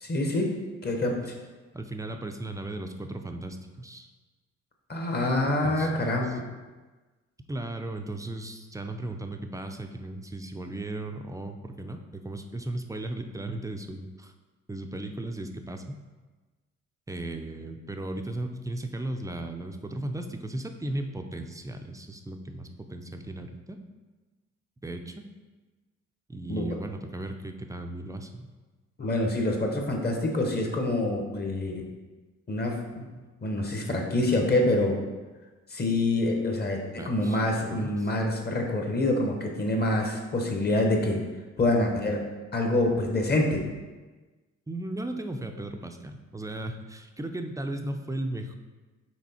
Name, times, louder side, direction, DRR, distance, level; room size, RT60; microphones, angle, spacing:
voice 1, 0.0-0.5 0.8-1.4 4.9-6.3 26.5-26.7 29.0-31.8 32.5-32.8 33.4-35.0 35.7-41.2 41.6-42.2 42.5-43.6, left 2 dB, 35° left, 2 dB, 1.2 m, -26 dB
voice 2, 1.7-4.1 5.6-6.4 7.5-14.3 14.7-16.0 17.1-23.8 24.8-25.2 26.3-28.5 33.0-33.2 37.0-37.4 37.7-38.1 44.7-48.5, right 1 dB, 10° right, 5 dB, 0.5 m, -36 dB
6.1 x 3.7 x 4.3 m, 1.3 s
cardioid pair, 90°, 30 cm